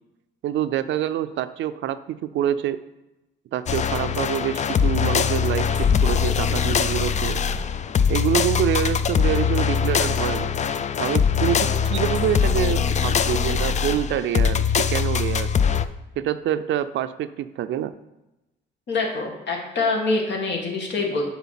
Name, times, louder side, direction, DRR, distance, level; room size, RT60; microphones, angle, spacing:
voice 1, 0.4-2.8 3.5-7.4 8.1-10.5 11.0-15.5 16.2-17.9, right 11 dB, 70° right, 13 dB, 0.5 m, -26 dB
sound 1, 3.7-15.9, left 7 dB, 35° left, 0.4 m, -22 dB
voice 2, 18.9-21.2, left 3 dB, 65° left, 1 dB, 2.0 m, -25 dB
7.2 x 4.1 x 5.8 m, 0.98 s
cardioid pair, 90°, 20 cm